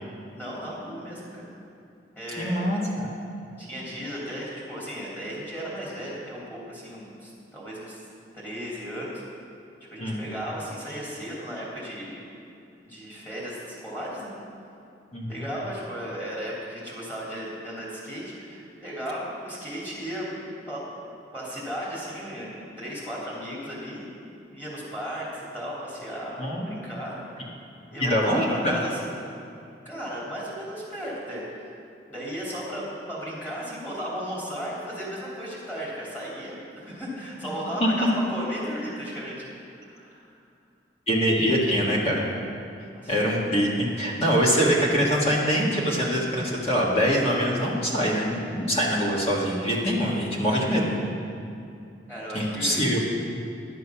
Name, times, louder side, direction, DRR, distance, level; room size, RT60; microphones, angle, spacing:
voice 1, 0.3-1.4 2.1-2.7 3.6-8.0 8.3-9.2 9.8-12.2 12.8-14.3 15.3-20.3 20.7-20.8 21.3-24.1 24.5-27.4 27.9-29.0 29.8-31.4 32.1-39.5 39.8-40.3 42.9-43.1 52.1-52.9, equal, 10° left, -7 dB, 3.1 m, -35 dB
voice 2, 2.4-3.1 10.0-10.2 15.1-15.4 26.4-26.7 28.0-28.7 37.8-38.1 41.1-42.3 43.1-51.0 52.3-53.1, equal, 35° left, -4 dB, 1.7 m, -24 dB
11.5 x 7.9 x 6.0 m, 2.6 s
head